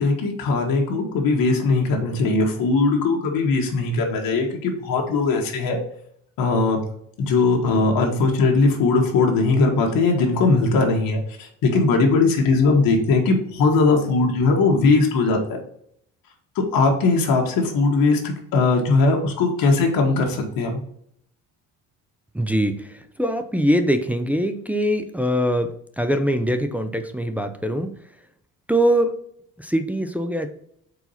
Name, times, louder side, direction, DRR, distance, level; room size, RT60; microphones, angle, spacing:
voice 1, 0.0-5.8 6.4-6.8 7.2-15.4 16.5-20.8, left 3 dB, 80° left, 1 dB, 1.5 m, -19 dB
voice 2, 22.3-27.9 28.7-29.1 29.6-30.5, equal, 5° right, 6 dB, 0.4 m, -22 dB
4.7 x 4.0 x 5.6 m, 0.69 s
cardioid pair, 150°, 34 cm